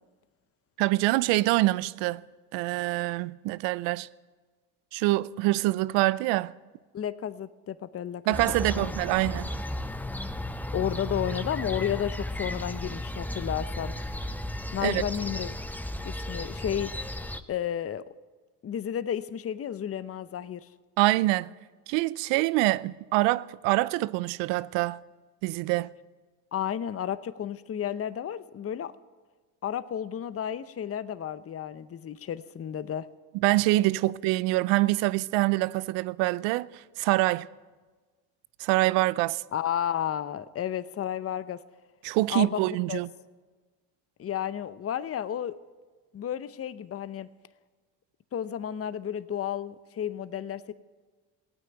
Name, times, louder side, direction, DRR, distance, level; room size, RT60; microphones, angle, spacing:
voice 1, 0.8-2.2 2.5-4.1 4.9-6.5 8.3-9.5 14.8-15.0 21.0-21.5 21.9-25.0 25.4-25.9 33.4-37.5 38.6-39.4 42.0-43.1, right 19 dB, 80° right, 0.6 m, -25 dB
voice 2, 6.9-8.4 8.7-8.9 10.7-13.9 14.7-15.5 16.0-16.9 17.5-18.0 18.6-20.7 26.5-28.9 29.6-33.1 39.5-41.6 42.3-42.6 42.9-43.0 44.2-45.6 46.1-47.3 48.3-50.7, left 9 dB, 35° left, 0.7 m, -32 dB
sound 1, 8.3-17.4, left 1 dB, 5° left, 0.8 m, -34 dB
16.0 x 9.1 x 8.9 m
supercardioid pair, 75°, 43 cm